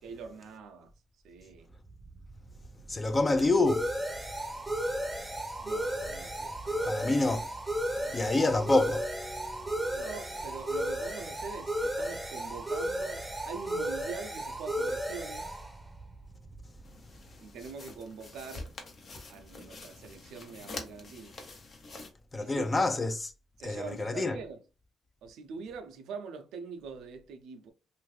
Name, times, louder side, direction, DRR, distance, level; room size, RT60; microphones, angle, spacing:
voice 1, 0.0-0.9 1.2-1.7 5.6-7.0 7.9-8.4 9.9-15.6 17.4-18.7 19.3-21.5 22.4-22.9 23.6-24.6 25.2-27.7, right 5 dB, 85° right, 0.5 m, -44 dB
sound 1, 1.7-17.2, right 1 dB, 10° right, 0.7 m, -35 dB
voice 2, 2.9-3.9 6.9-7.5 8.1-9.1 22.3-23.3 23.6-24.4, left 2 dB, 25° left, 0.4 m, -27 dB
Keyboard (musical), 8.4-11.2, left 3 dB, 90° left, 1.0 m, -49 dB
sound 2, 16.8-22.1, left 2 dB, 50° left, 0.8 m, -46 dB
2.6 x 2.5 x 3.2 m
cardioid pair, 90°, 0 cm